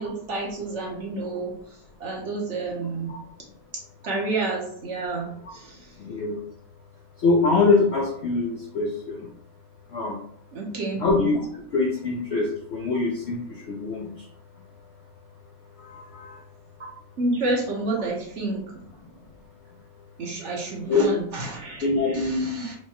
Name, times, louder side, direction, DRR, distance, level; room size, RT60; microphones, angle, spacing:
voice 1, 0.0-1.5 2.0-3.1 4.0-5.8 10.5-11.0 17.2-18.6 20.2-22.8, right 2 dB, 55° right, -2 dB, 1.1 m, -29 dB
voice 2, 6.0-6.4 7.2-9.2 9.9-10.2 11.0-11.4 11.7-13.4 13.7-14.1 15.9-16.3 20.9-21.1 21.8-22.5, left 3 dB, 65° left, -1 dB, 0.6 m, -23 dB
4.6 x 2.2 x 2.9 m, 0.64 s
omnidirectional pair, 1.6 m